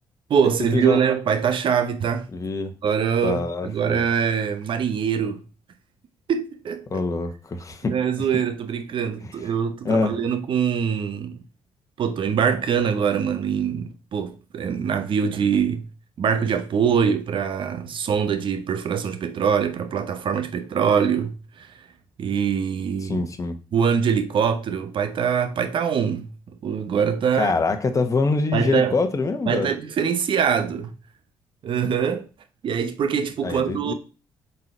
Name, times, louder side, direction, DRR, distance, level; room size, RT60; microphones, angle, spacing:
voice 1, 0.3-2.3 2.8-5.4 6.3-7.0 7.9-11.4 12.0-15.9 16.2-21.7 22.2-23.3 23.7-26.3 26.6-27.5 28.5-28.9 29.5-30.9 31.6-32.2 32.6-33.9, right 7 dB, 60° right, 0.9 m, -23 dB
voice 2, 2.3-2.7 3.2-4.0 6.9-8.3 9.2-9.3 9.8-10.2 23.0-23.6 27.3-29.7 33.4-33.9, left 3 dB, 35° left, 1.0 m, -24 dB
5.6 x 4.0 x 4.4 m
supercardioid pair, 60°, 10 cm